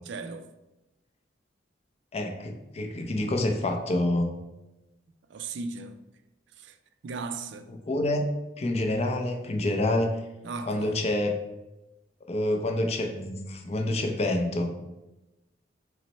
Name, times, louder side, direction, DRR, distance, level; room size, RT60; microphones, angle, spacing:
voice 1, 0.1-0.5 5.3-6.0 6.6-6.8 7.0-7.7 10.4-11.0, right 4 dB, 70° right, 0.4 m, -36 dB
voice 2, 2.1-4.3 7.7-10.2 10.7-11.4 12.3-14.7, left 1 dB, 35° left, 0.5 m, -27 dB
5.7 x 2.1 x 4.3 m
head